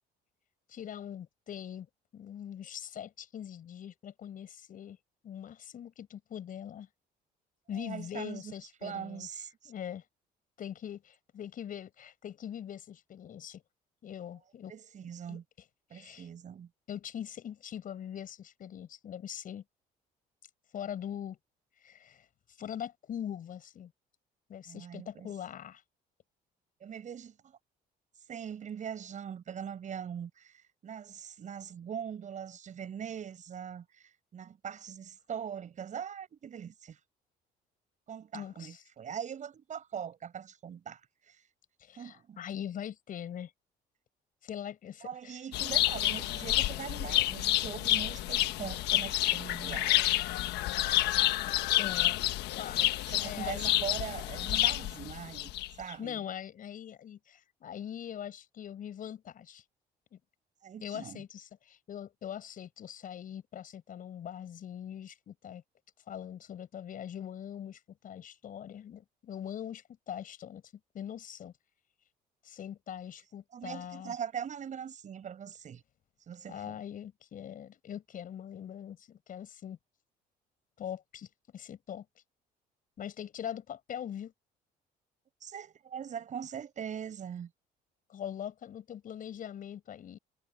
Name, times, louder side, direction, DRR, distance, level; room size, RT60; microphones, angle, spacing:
voice 1, 0.7-1.9 2.1-5.0 5.2-6.9 7.7-9.3 9.6-10.0 10.6-13.6 14.0-14.7 15.3-15.4 15.9-16.3 16.9-19.6 20.7-21.4 21.8-22.3 22.6-23.9 24.5-25.8 38.3-38.8 41.8-43.5 44.4-45.4 51.8-52.2 52.6-52.9 53.2-53.7 56.0-59.6 60.1-60.2 60.8-65.6 66.1-70.6 70.9-71.5 72.4-74.2 76.5-79.8 80.8-82.1 83.0-84.3 88.1-90.2, left 9 dB, 55° left, 7.2 m, -42 dB
voice 2, 7.7-8.5 8.8-9.7 14.7-15.4 15.9-16.7 24.7-25.3 26.8-27.6 28.3-37.0 38.1-41.4 42.0-42.4 45.0-50.2 52.8-56.2 60.6-61.2 73.5-75.8 76.3-76.8 85.4-87.5, right 8 dB, 45° right, 7.6 m, -42 dB
sound 1, 45.5-55.9, left 15 dB, 85° left, 1.2 m, -29 dB
cardioid pair, 110°, 17 cm